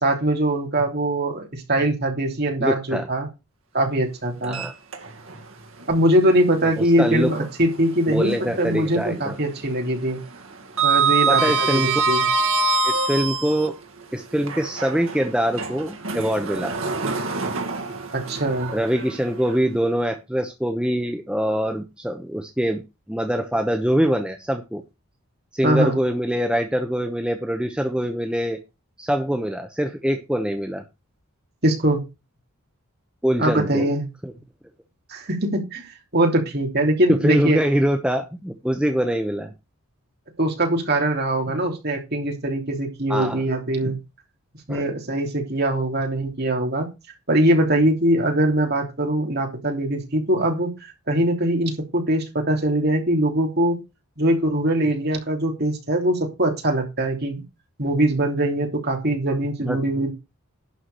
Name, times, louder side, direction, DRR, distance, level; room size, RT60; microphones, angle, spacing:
voice 1, 0.0-3.3 3.7-4.6 5.9-10.2 10.8-12.2 18.1-18.7 25.6-25.9 31.6-32.0 33.4-34.1 35.1-37.6 40.4-44.0 44.7-46.9 47.3-53.8 54.2-57.4 57.8-60.1, right 1 dB, 45° right, 2 dB, 3.2 m, -22 dB
voice 2, 2.6-3.1 4.4-4.7 6.8-7.3 8.1-9.4 11.3-11.9 12.8-13.7 14.1-16.7 18.7-22.8 23.1-24.8 25.5-28.6 29.0-30.8 33.2-33.8 34.2-34.3 37.1-39.5 43.1-43.4 44.7-44.9 59.6-59.8, equal, 5° right, 4 dB, 0.9 m, -24 dB
Sliding door, 4.4-5.4 5.8-5.9 7.6-8.7 8.9-9.3 9.6-13.7 14.3-19.5, right 4 dB, 65° right, 1.9 m, -25 dB
11.5 x 4.8 x 6.5 m, 0.26 s
head